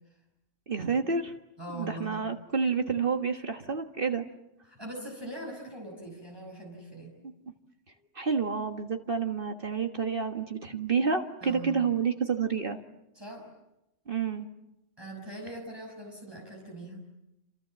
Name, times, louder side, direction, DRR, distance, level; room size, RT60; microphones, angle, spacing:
voice 1, 0.7-1.3 1.7-4.3 8.2-12.8 14.1-14.5, right 5 dB, 45° right, 5 dB, 1.8 m, -29 dB
voice 2, 1.6-2.3 4.7-7.1 11.4-11.8 13.1-13.5 15.0-17.0, right 1 dB, 20° right, 0 dB, 5.9 m, -41 dB
28.0 x 28.0 x 7.6 m, 0.91 s
omnidirectional pair, 1.3 m